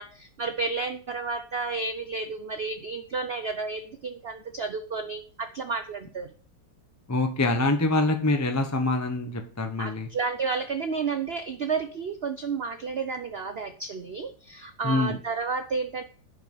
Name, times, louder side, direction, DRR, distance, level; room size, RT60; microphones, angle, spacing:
voice 1, 0.0-6.3 9.8-16.0, right 4 dB, 90° right, 9 dB, 0.5 m, -31 dB
voice 2, 7.1-10.1 14.8-15.2, left 2 dB, 15° left, 5 dB, 0.7 m, -25 dB
10.0 x 5.5 x 5.5 m, 0.42 s
omnidirectional pair, 2.0 m